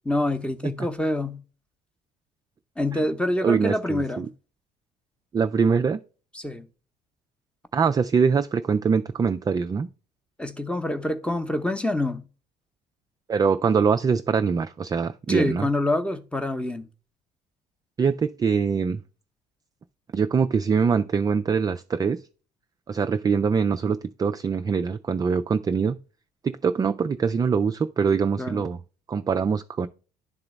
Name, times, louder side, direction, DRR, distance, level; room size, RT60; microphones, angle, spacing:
voice 1, 0.0-1.4 2.8-4.3 6.3-6.7 10.4-12.2 15.3-16.9 28.4-28.6, left 1 dB, 5° left, 0.8 m, -26 dB
voice 2, 3.4-4.3 5.3-6.0 7.7-9.9 13.3-15.7 18.0-19.0 20.1-22.2 22.9-26.0 26.4-28.8 29.1-29.9, right 5 dB, 20° right, 0.3 m, -23 dB
11.0 x 3.8 x 3.1 m
figure-of-eight pair, 50°, 21 cm